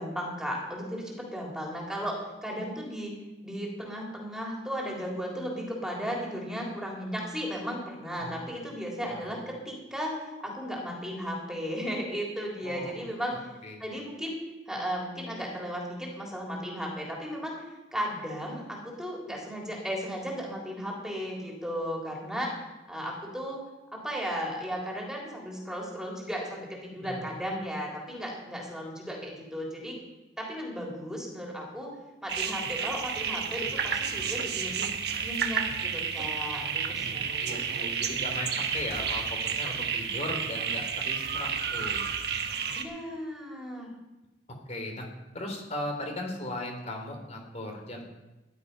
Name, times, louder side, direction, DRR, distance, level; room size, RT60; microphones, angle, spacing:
voice 1, 0.0-3.2 3.4-13.3 13.8-14.4 14.7-17.6 17.9-22.5 22.9-23.6 23.9-30.0 30.4-31.9 32.2-34.9 35.2-37.5 42.7-43.9, equal, 5° right, -2 dB, 3.7 m, -35 dB
voice 2, 12.6-12.9 13.3-13.9 26.9-27.2 36.5-42.0 44.7-45.1 45.3-48.0, left 1 dB, 40° left, 3 dB, 3.2 m, -38 dB
sound 1, 32.3-42.8, right 7 dB, 65° right, 1.3 m, -31 dB
15.0 x 11.5 x 5.5 m, 1.1 s
head